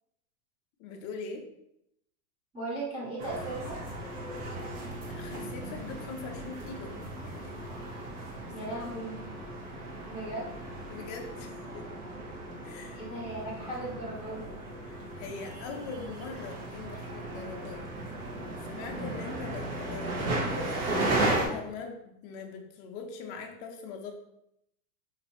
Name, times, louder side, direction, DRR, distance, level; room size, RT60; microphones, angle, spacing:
voice 1, 0.8-1.5 5.1-7.7 8.6-9.1 10.9-11.9 12.6-13.0 14.8-17.9 18.7-21.0 21.3-24.1, left 5 dB, 35° left, 3 dB, 0.6 m, -42 dB
voice 2, 2.5-3.8 8.5-9.2 10.1-10.5 12.9-14.6, right 2 dB, 10° right, -8 dB, 1.2 m, -37 dB
sound 1, 3.2-21.5, right 2 dB, 65° right, 1.5 m, -36 dB
5.1 x 2.9 x 3.1 m, 0.79 s
supercardioid pair, 145°, 45 cm